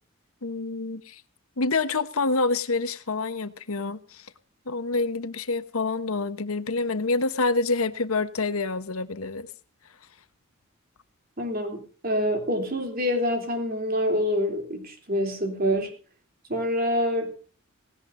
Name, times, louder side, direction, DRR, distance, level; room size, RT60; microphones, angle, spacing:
voice 1, 0.4-1.2 1.6-4.3 4.7-9.5, left 3 dB, 80° left, 12 dB, 1.1 m, -27 dB
voice 2, 11.4-15.9 16.5-17.3, equal, 40° right, 4 dB, 3.3 m, -26 dB
18.5 x 17.0 x 2.7 m, 0.38 s
head